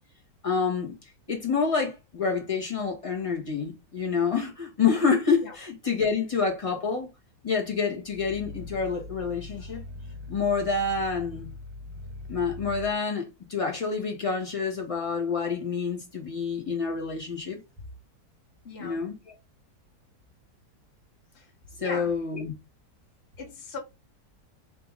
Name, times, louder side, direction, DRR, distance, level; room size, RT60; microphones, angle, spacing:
voice 1, 0.4-1.0 1.3-7.1 7.4-9.8 10.3-11.5 12.3-17.6 18.8-19.3 21.8-22.5, left 5 dB, 20° left, 1.4 m, -28 dB
Growling, 8.0-13.0, left 2 dB, 50° right, 0.9 m, -41 dB
voice 2, 18.6-19.0 21.3-21.4 21.8-22.1 23.4-23.8, left 4 dB, 40° left, 1.7 m, -38 dB
4.8 x 3.0 x 3.5 m
omnidirectional pair, 1.8 m